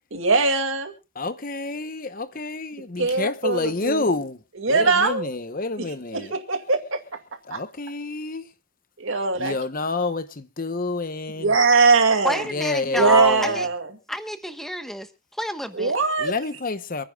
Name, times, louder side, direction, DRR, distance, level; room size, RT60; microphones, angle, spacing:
voice 1, 0.1-0.9 3.0-4.0 4.6-5.3 5.8-5.9 6.1-7.0 7.5-7.6 9.0-9.5 11.4-12.5 12.9-13.9 15.7-16.3, right 4 dB, 65° right, 2.2 m, -21 dB
voice 2, 1.1-4.4 4.7-6.4 7.4-8.5 9.4-11.5 12.5-13.7 16.2-17.0, left 3 dB, 40° left, 0.9 m, -28 dB
voice 3, 12.2-13.7 14.1-15.9, equal, ahead, 1.1 m, -29 dB
28.0 x 10.0 x 2.3 m
head